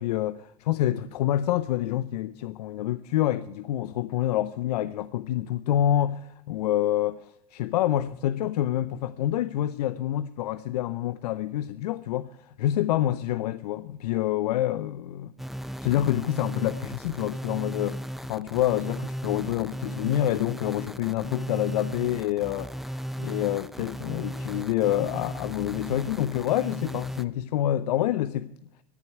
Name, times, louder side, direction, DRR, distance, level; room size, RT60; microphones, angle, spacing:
voice 1, 0.0-15.3 15.8-18.0 18.3-28.5, left 12 dB, 75° left, 0.6 m, -27 dB
sound 1, 15.4-27.3, equal, ahead, 0.7 m, -36 dB
18.5 x 10.5 x 4.7 m
hypercardioid pair, 85°, 20 cm